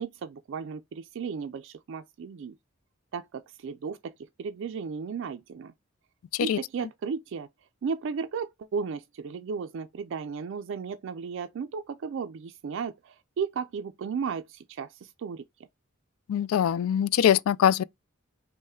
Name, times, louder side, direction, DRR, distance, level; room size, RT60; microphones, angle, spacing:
voice 1, 0.0-2.5 3.1-5.7 6.4-7.5 7.8-15.4, right 5 dB, 60° right, 0.3 m, -35 dB
voice 2, 16.3-17.8, left 9 dB, 85° left, 0.3 m, -22 dB
5.4 x 2.1 x 3.5 m
head